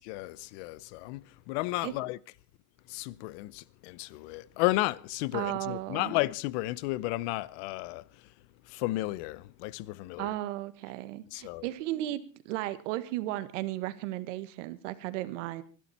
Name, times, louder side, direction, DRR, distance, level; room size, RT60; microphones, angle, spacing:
voice 1, 0.1-2.2 2.9-8.3 8.6-10.3 11.3-11.6, left 19 dB, 65° left, 0.8 m, -33 dB
voice 2, 5.3-6.1 10.2-15.6, right 15 dB, 85° right, 1.6 m, -35 dB
24.5 x 12.0 x 4.3 m
cardioid pair, 160°, 36 cm